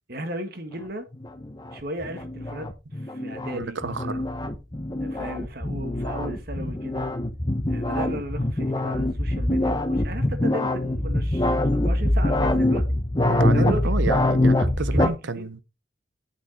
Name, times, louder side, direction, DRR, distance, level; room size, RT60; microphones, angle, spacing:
voice 1, 0.1-1.1 1.7-4.2 5.0-7.1 7.7-12.9 13.5-14.1 14.9-15.5, equal, 55° right, 1.9 m, -35 dB
sound 1, 1.1-15.1, left 1 dB, 20° left, 1.1 m, -24 dB
voice 2, 3.5-4.2 13.3-15.6, right 3 dB, 80° right, 0.8 m, -30 dB
8.5 x 6.5 x 4.4 m
head